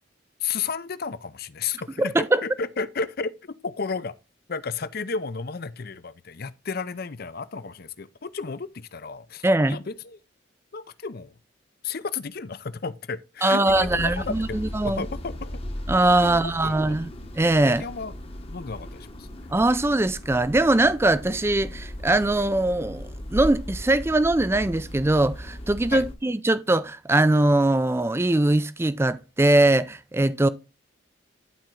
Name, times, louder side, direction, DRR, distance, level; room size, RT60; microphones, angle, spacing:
voice 1, 0.4-4.2 4.5-10.2 10.7-11.3 11.8-15.6 16.2-17.0 17.6-18.1 18.5-19.3 25.9-26.0, left 5 dB, 50° left, 0.6 m, -33 dB
voice 2, 2.0-2.4 9.4-9.8 13.4-15.1 15.9-17.1 17.4-17.8 19.5-30.5, right 2 dB, 10° right, 0.4 m, -21 dB
sound 1, 13.7-26.1, equal, 30° left, 0.9 m, -37 dB
11.5 x 4.4 x 3.8 m
head